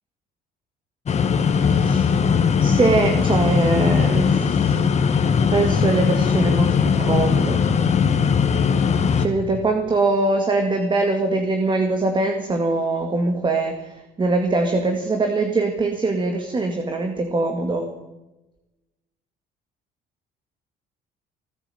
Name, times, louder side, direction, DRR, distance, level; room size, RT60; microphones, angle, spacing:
sound 1, 1.1-9.3, left 6 dB, 40° left, 1.6 m, -19 dB
voice 1, 1.7-2.2 2.6-4.9 5.5-7.6 9.2-17.9, right 3 dB, 30° right, 4 dB, 2.1 m, -22 dB
17.5 x 9.9 x 7.9 m, 1.0 s
cardioid pair, 110°, 17 cm